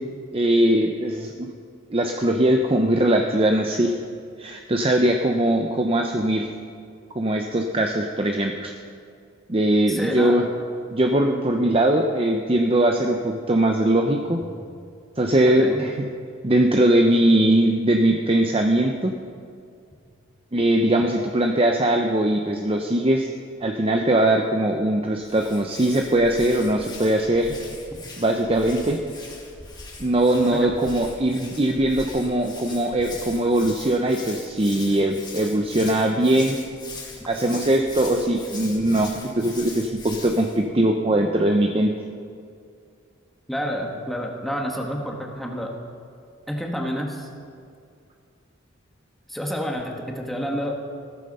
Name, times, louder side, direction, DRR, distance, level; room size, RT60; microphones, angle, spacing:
voice 1, 0.3-1.5 1.9-3.9 4.4-6.5 7.1-8.7 9.5-10.5 10.9-14.4 15.2-16.1 16.4-19.1 20.5-23.3 23.6-27.6 28.2-29.0 30.0-36.6 37.3-41.9, right 1 dB, 30° right, 3 dB, 0.7 m, -21 dB
voice 2, 9.9-10.4 15.5-15.8 30.5-30.7 43.5-45.7 46.5-47.3 49.3-50.7, equal, ahead, 0 dB, 1.7 m, -29 dB
Hands, 25.2-40.6, left 3 dB, 20° left, 2.3 m, -41 dB
15.5 x 14.5 x 5.5 m, 2.3 s
head